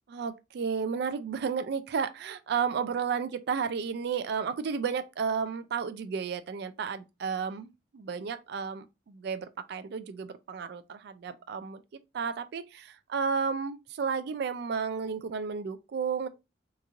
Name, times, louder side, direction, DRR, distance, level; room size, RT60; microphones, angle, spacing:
voice 1, 0.1-11.8 12.1-16.3, right 6 dB, 60° right, 0.3 m, -32 dB
3.0 x 2.4 x 2.5 m
head